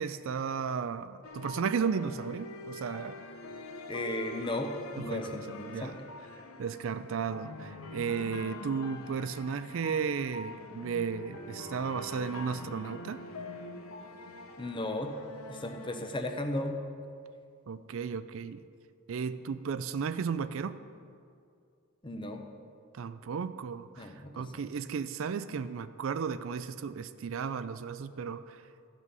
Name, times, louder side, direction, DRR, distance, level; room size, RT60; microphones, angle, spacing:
voice 1, 0.0-3.2 5.0-5.4 5.7-5.9 6.6-13.2 17.7-18.6 19.1-20.8 22.9-28.6, right 6 dB, 65° right, 13 dB, 0.4 m, -34 dB
sound 1, 1.2-16.7, left 2 dB, 80° left, 0.8 m, -44 dB
voice 2, 3.9-6.0 14.6-15.1 15.5-16.8 22.0-22.4 24.0-24.7, left 1 dB, 25° left, 5 dB, 0.7 m, -35 dB
13.5 x 6.1 x 5.4 m, 2.4 s
head